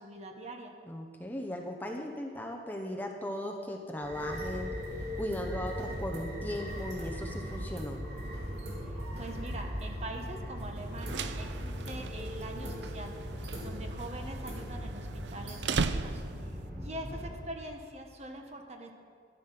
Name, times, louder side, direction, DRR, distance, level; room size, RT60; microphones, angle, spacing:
voice 1, 0.0-0.7 8.9-18.9, right 1 dB, 40° right, 3 dB, 1.4 m, -44 dB
voice 2, 0.9-4.7 5.1-8.0 16.4-16.9, left 1 dB, 10° left, 1 dB, 0.9 m, -38 dB
sound 1, 4.0-17.3, equal, 70° right, 3.3 m, -39 dB
sound 2, 10.9-16.6, right 4 dB, 85° right, 0.5 m, -38 dB
12.5 x 11.0 x 5.9 m, 2.1 s
head